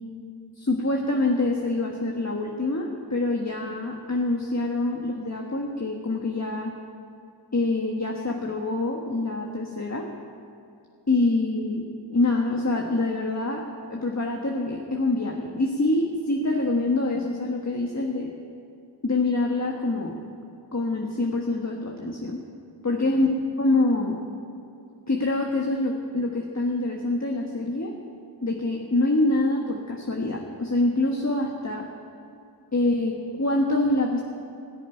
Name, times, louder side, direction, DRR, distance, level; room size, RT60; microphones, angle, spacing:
voice 1, 0.6-6.7 7.5-10.1 11.1-18.3 19.0-20.2 20.7-22.4 22.8-23.3 23.6-24.2 25.1-27.9 28.4-31.9 32.7-34.2, left 2 dB, 40° left, 0 dB, 1.4 m, -25 dB
17.0 x 7.1 x 10.0 m, 2.5 s
wide cardioid pair, 50°, 44 cm